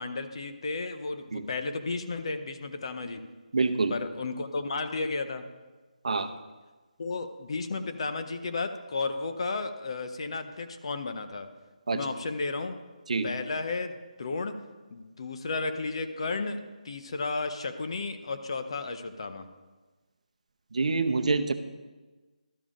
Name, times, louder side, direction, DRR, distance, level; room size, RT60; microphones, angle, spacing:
voice 1, 0.0-3.3 3.9-5.4 7.0-11.5 11.9-12.8 13.2-14.6 14.9-19.5, left 3 dB, 45° left, 8 dB, 0.7 m, -33 dB
voice 2, 3.5-3.9 6.0-6.3 11.9-12.0 13.1-13.3 20.7-21.5, right 3 dB, 60° right, 9 dB, 0.7 m, -26 dB
12.0 x 7.0 x 3.7 m, 1.3 s
figure-of-eight pair, 170°, 4 cm